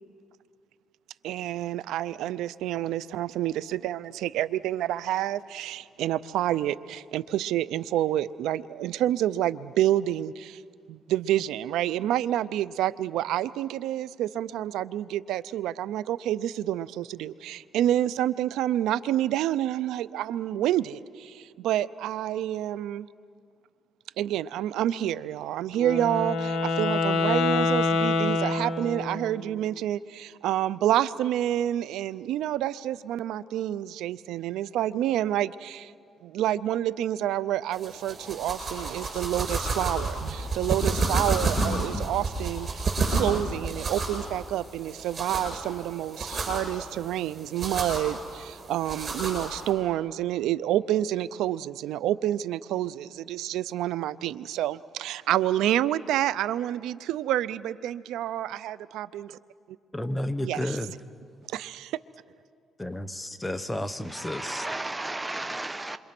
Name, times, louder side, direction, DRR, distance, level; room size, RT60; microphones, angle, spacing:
voice 1, 1.2-10.6 10.9-23.1 24.2-35.9 36.2-42.7 43.1-59.4 60.4-60.8 61.5-62.0, right 12 dB, 90° right, 0.5 m, -28 dB
Wind instrument woodwind instrument, 25.7-29.4, left 3 dB, 75° left, 2.0 m, -26 dB
sound 1, 37.7-49.7, right 3 dB, 40° right, 7.6 m, -31 dB
voice 2, 41.6-42.1 59.9-60.9 62.8-64.7, left 1 dB, 10° left, 1.1 m, -32 dB
voice 3, 64.1-66.0, right 2 dB, 15° right, 1.0 m, -34 dB
27.5 x 25.0 x 6.1 m
cardioid pair, 90°, 0 cm